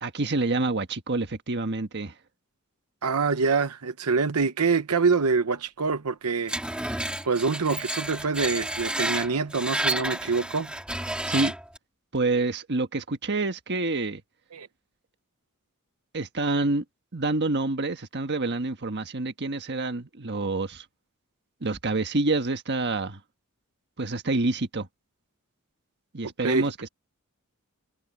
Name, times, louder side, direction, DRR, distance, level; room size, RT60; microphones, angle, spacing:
voice 1, 0.0-2.1 11.3-11.5 12.1-14.2 16.1-16.8 17.1-20.8 21.6-23.2 24.0-24.9 26.1-26.9, right 2 dB, 50° right, 1.5 m, -27 dB
voice 2, 3.0-6.8 7.2-10.7 14.5-14.7 26.4-26.7, right 4 dB, 85° right, 0.9 m, -25 dB
Screech, 6.5-11.8, right 1 dB, 5° right, 2.2 m, -30 dB
head